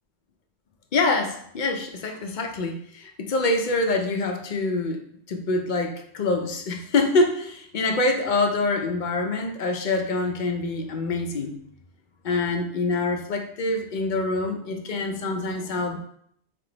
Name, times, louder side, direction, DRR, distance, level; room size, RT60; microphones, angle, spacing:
voice 1, 0.9-5.0 5.3-11.6 12.2-16.0, left 3 dB, 55° left, 4 dB, 0.6 m, -25 dB
3.4 x 3.3 x 3.8 m, 0.68 s
omnidirectional pair, 1.1 m